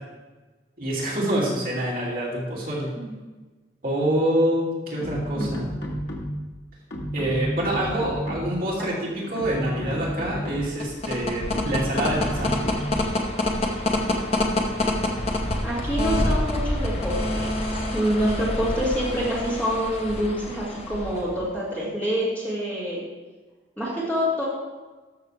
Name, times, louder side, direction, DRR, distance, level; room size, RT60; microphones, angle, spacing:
voice 1, 0.8-2.9 3.8-5.7 7.1-12.6, right 1 dB, 50° right, -6 dB, 2.6 m, -26 dB
sound 1, 5.0-6.5 6.9-8.7 9.2-10.9 11.5-13.1, equal, 70° left, 1.6 m, -31 dB
sound 2, 10.7-21.4, left 1 dB, 35° left, 0.9 m, -27 dB
voice 2, 15.6-17.1 17.4-23.0 23.8-24.5, equal, 10° left, -7 dB, 2.5 m, -26 dB
13.0 x 6.4 x 3.4 m, 1.3 s
head